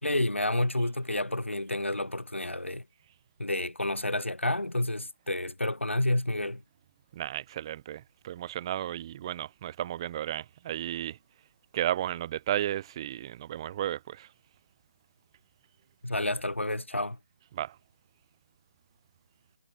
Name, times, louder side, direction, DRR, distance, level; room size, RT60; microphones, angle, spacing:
voice 1, 0.0-2.8 3.4-6.6 16.0-17.2, left 1 dB, 85° left, 2.4 m, -29 dB
voice 2, 7.1-11.2 11.7-14.3 17.5-17.8, right 12 dB, 25° right, 0.5 m, -33 dB
figure-of-eight pair, 150°, 7 cm